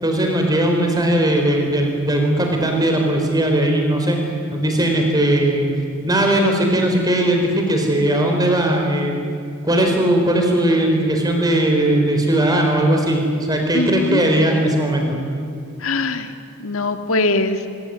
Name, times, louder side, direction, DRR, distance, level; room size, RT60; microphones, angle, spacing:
voice 1, 0.0-4.2 4.5-5.7 6.0-9.1 9.6-15.2, right 1 dB, 15° right, 2 dB, 4.4 m, -18 dB
voice 2, 13.7-14.2 15.8-16.3 16.6-17.6, left 2 dB, 65° left, 8 dB, 1.9 m, -21 dB
24.5 x 23.0 x 9.5 m, 2.4 s
head